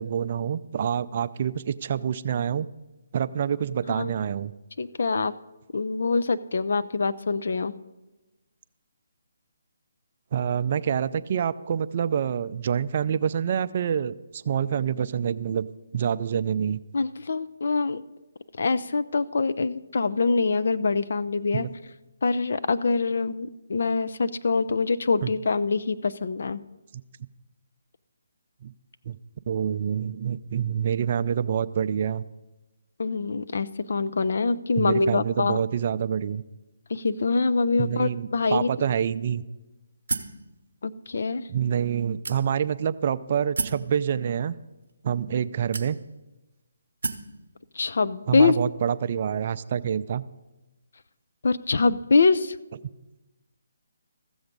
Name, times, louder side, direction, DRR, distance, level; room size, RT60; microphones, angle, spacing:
voice 1, 0.0-2.7 3.1-4.5 10.3-15.7 15.9-16.8 21.5-21.7 25.2-25.3 28.6-28.7 29.1-29.2 29.5-32.2 34.8-36.4 37.8-39.4 41.5-44.5 45.0-46.0 48.3-50.2, right 8 dB, 45° right, 13 dB, 0.4 m, -27 dB
voice 2, 4.8-5.3 5.7-7.7 16.9-18.0 18.5-21.7 22.2-26.6 33.0-35.6 36.9-38.7 40.8-41.5 47.7-48.6 51.4-52.6, left 4 dB, 65° left, 14 dB, 0.5 m, -24 dB
sound 1, 40.1-40.4 41.2-41.3 42.2-42.8 43.6-43.9 44.8-44.9 45.7-46.3 47.0-47.3, right 4 dB, 75° right, 0.8 m, -31 dB
14.5 x 7.1 x 5.2 m, 1.1 s
hypercardioid pair, 155°, 0 cm